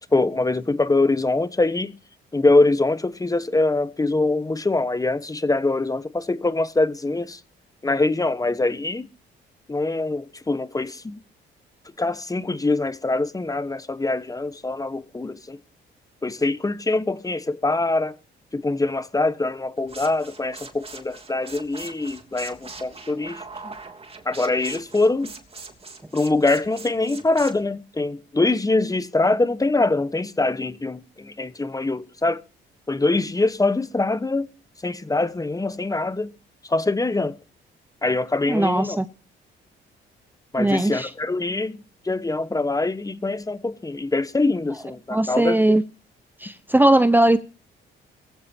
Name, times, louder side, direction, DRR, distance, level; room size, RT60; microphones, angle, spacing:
voice 1, 0.1-1.9 2.3-7.4 7.8-9.1 9.7-11.2 12.0-15.6 16.2-18.1 18.5-23.7 24.2-25.3 26.1-32.4 32.9-34.5 34.8-36.3 36.6-37.3 38.0-39.0 40.5-41.8 42.0-45.6, left 2 dB, 15° left, 1.2 m, -23 dB
sound 1, 19.8-27.6, right 4 dB, 30° right, 3.2 m, -41 dB
voice 2, 38.5-39.1 40.6-41.1 45.1-45.8 46.4-47.4, right 1 dB, 10° right, 0.9 m, -19 dB
22.5 x 15.0 x 2.9 m
cardioid pair, 90°, 20 cm